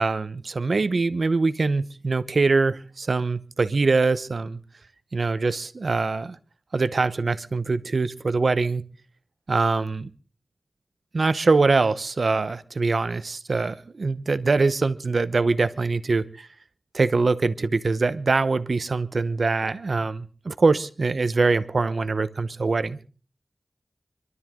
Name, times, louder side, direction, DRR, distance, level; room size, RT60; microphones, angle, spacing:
voice 1, 0.0-4.6 5.1-6.4 6.7-8.9 9.5-10.1 11.1-16.5 16.9-23.0, right 3 dB, 75° right, 0.8 m, -23 dB
25.5 x 12.5 x 3.7 m
wide cardioid pair, 60°, 0 cm